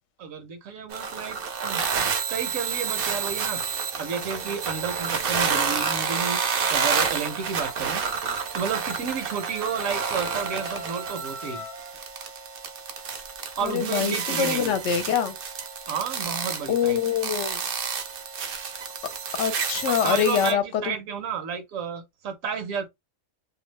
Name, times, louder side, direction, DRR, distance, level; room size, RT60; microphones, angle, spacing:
voice 1, 0.2-1.8 2.3-3.6 4.0-6.4 6.7-8.0 8.5-11.7 13.6-15.1 15.9-17.0 19.9-22.9, right 6 dB, 75° right, 1.0 m, -32 dB
sound 1, 0.9-20.5, right 6 dB, 55° right, 0.7 m, -29 dB
Wind instrument woodwind instrument, 7.3-12.0, right 2 dB, 15° right, 0.4 m, -39 dB
voice 2, 13.6-15.3 16.7-17.6 19.4-21.0, left 8 dB, 70° left, 0.9 m, -25 dB
2.6 x 2.2 x 3.1 m
omnidirectional pair, 1.4 m